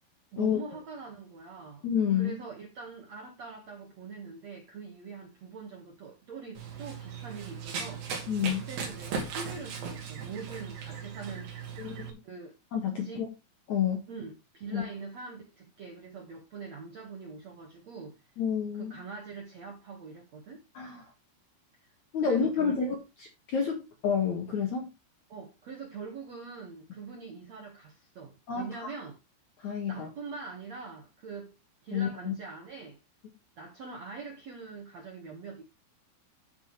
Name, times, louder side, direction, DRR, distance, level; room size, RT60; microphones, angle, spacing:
voice 1, 0.3-1.8 2.1-8.2 8.4-11.5 12.2-12.6 13.0-13.2 14.1-18.2 18.7-20.6 21.8-21.9 22.2-22.8 25.3-29.2 29.9-31.5 31.8-33.0 33.6-35.6, right 4 dB, 80° right, 1.5 m, -43 dB
voice 2, 1.8-2.3 8.3-8.6 11.8-12.2 12.7-13.3 13.7-14.0 14.7-14.8 18.4-19.0 20.7-21.0 22.1-23.0 23.5-24.9 28.5-28.9 29.6-30.1 31.9-32.3, left 7 dB, 65° left, 1.9 m, -29 dB
Run, 6.6-12.1, right 5 dB, 60° right, 4.6 m, -38 dB
13.0 x 5.9 x 3.2 m
omnidirectional pair, 5.8 m